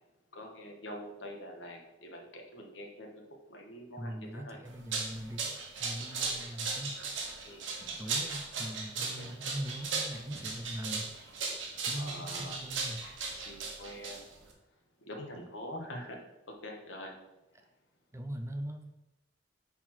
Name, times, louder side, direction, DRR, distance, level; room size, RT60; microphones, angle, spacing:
voice 1, 0.3-3.2 3.5-4.6 7.4-7.7 9.0-9.3 11.9-12.6 13.4-14.2 15.0-16.2 16.5-17.1, left 1 dB, 75° left, 1 dB, 1.2 m, -45 dB
voice 2, 3.9-7.0 7.8-11.1 11.9-13.0 18.1-18.9, right 1 dB, 15° right, 6 dB, 0.4 m, -41 dB
sound 1, 4.7-14.5, right 4 dB, 85° right, 1.1 m, -37 dB
5.9 x 4.2 x 4.3 m, 0.96 s
head